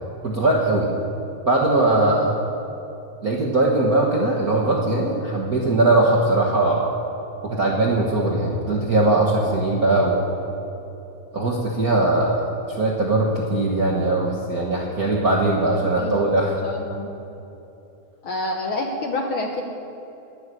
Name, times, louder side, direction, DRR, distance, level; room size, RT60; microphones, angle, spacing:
voice 1, 0.2-0.9 1.5-2.4 3.2-6.9 7.4-10.2 11.3-16.5, right 2 dB, 45° right, -3 dB, 1.2 m, -20 dB
voice 2, 16.0-17.1 18.2-19.6, left 2 dB, 60° left, 2 dB, 1.5 m, -28 dB
11.5 x 9.5 x 9.8 m, 2.9 s
omnidirectional pair, 3.4 m